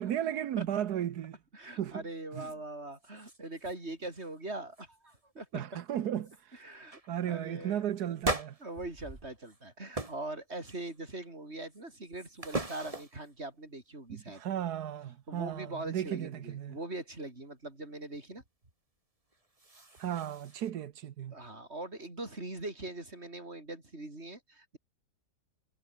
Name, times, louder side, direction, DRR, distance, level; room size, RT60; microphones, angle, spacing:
voice 1, 0.0-1.4 1.8-2.0 2.3-2.5 5.5-6.6 7.1-8.6 14.1-16.8 20.0-21.3, right 10 dB, 85° right, 1.5 m, -35 dB
voice 2, 1.5-5.6 6.5-8.1 8.6-14.4 15.3-18.4 21.3-24.8, right 2 dB, 45° right, 5.7 m, -42 dB
sound 1, 2.5-2.6 2.9-3.7 4.0-4.4 4.7-5.2 5.8-5.9 6.2-6.4 6.9-7.1 8.2-9.6 9.9-10.3 10.6-11.1 11.7-13.3 19.3-20.7, right 2 dB, 20° right, 2.7 m, -39 dB
omnidirectional pair, 1.6 m